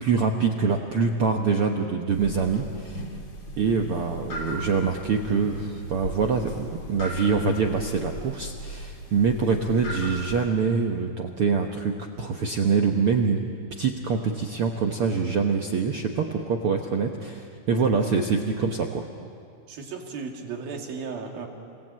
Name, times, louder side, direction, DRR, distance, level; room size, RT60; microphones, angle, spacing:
voice 1, 0.0-3.0 3.6-13.4 13.7-19.1, right 5 dB, 70° right, 3 dB, 1.3 m, -25 dB
sound 1, 2.1-10.5, right 1 dB, 55° left, 4.2 m, -37 dB
voice 2, 19.7-21.5, right 5 dB, 90° right, 2 dB, 4.2 m, -35 dB
28.5 x 18.0 x 8.7 m, 2.4 s
omnidirectional pair, 4.1 m